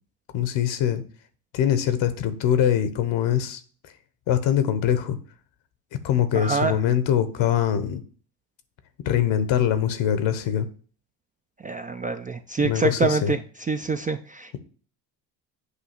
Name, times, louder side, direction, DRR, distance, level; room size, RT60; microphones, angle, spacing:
voice 1, 0.3-1.0 1.5-3.6 4.3-5.2 6.0-8.0 9.0-10.7 12.6-13.3, left 10 dB, 65° left, 12 dB, 1.1 m, -23 dB
voice 2, 6.3-6.8 11.6-13.4 13.7-14.6, right 4 dB, 20° right, 7 dB, 0.3 m, -25 dB
8.2 x 2.8 x 5.8 m, 0.42 s
hypercardioid pair, 65°, 49 cm